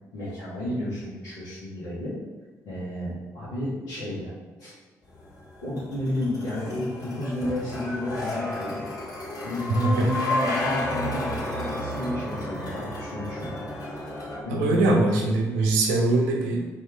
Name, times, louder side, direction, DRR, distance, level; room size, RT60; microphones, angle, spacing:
voice 1, 0.1-2.1 2.6-4.3 4.6-4.7 5.6-8.8 9.4-13.6 14.4-15.2, left 1 dB, 80° left, -12 dB, 1.2 m, -31 dB
sound 1, 5.1-14.4, left 1 dB, 50° left, 1.5 m, -32 dB
voice 2, 14.5-16.7, right 2 dB, 85° right, 0 dB, 0.6 m, -22 dB
4.4 x 2.8 x 3.4 m, 1.3 s
hypercardioid pair, 45°, 8 cm